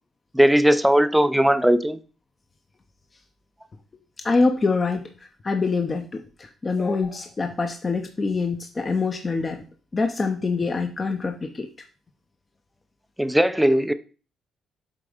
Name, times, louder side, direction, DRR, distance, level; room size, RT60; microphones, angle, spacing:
voice 1, 0.3-2.0 13.2-13.9, equal, 5° right, 0.5 m, -18 dB
voice 2, 4.2-9.6 9.9-11.7, left 4 dB, 30° left, 0.8 m, -25 dB
7.7 x 3.4 x 5.0 m
cardioid pair, 90°, 0 cm